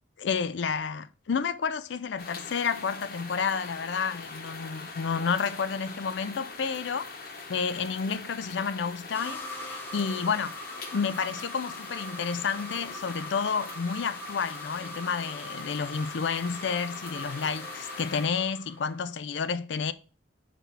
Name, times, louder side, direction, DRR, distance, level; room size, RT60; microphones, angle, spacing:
voice 1, 0.2-7.2 7.5-10.6 10.9-19.9, left 6 dB, 70° left, 0.4 m, -30 dB
sound 1, 2.2-18.3, left 3 dB, 50° left, 1.1 m, -43 dB
sound 2, 9.1-19.1, left 1 dB, 10° left, 0.9 m, -42 dB
6.0 x 5.0 x 3.2 m
head